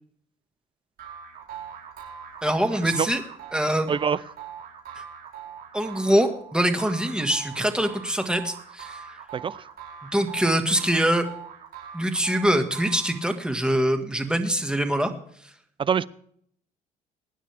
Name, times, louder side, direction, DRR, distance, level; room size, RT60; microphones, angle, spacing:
sound 1, 1.0-13.5, right 7 dB, 70° right, 4.9 m, -42 dB
voice 1, 2.4-3.2 3.5-3.9 5.0-5.1 5.7-9.1 10.1-11.2 11.9-15.1, right 1 dB, 5° right, 6 dB, 1.7 m, -24 dB
voice 2, 3.9-4.2 9.3-9.6 15.8-16.1, right 7 dB, 30° right, 19 dB, 0.5 m, -24 dB
23.5 x 9.9 x 3.4 m, 0.66 s
cardioid pair, 110°, 17 cm